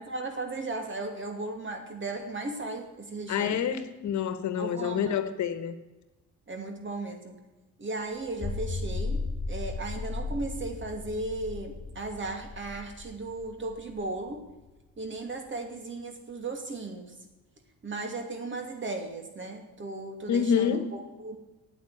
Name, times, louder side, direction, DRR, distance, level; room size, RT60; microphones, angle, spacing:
voice 1, 0.1-3.6 4.6-5.2 6.5-7.4 7.8-9.2 9.5-14.4 15.0-17.1 17.8-21.4, right 2 dB, 40° right, 5 dB, 2.6 m, -36 dB
voice 2, 3.3-5.7 20.3-20.9, left 8 dB, 70° left, 11 dB, 1.3 m, -27 dB
sound 1, 8.2-14.7, left 3 dB, 30° left, 3.4 m, -36 dB
9.1 x 8.8 x 8.7 m, 1.1 s
cardioid pair, 90°, 30 cm